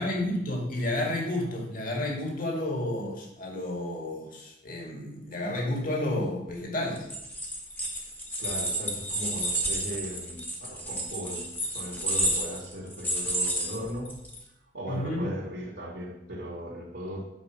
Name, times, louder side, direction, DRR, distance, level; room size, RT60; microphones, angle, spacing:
voice 1, 0.0-7.1 14.9-15.3, left 1 dB, 45° left, 0 dB, 2.0 m, -31 dB
sound 1, 7.0-14.4, right 1 dB, 10° left, 1.3 m, -31 dB
voice 2, 8.4-11.5 11.7-14.1 14.7-17.2, equal, 70° right, -7 dB, 2.3 m, -37 dB
8.5 x 5.0 x 5.9 m, 0.85 s
head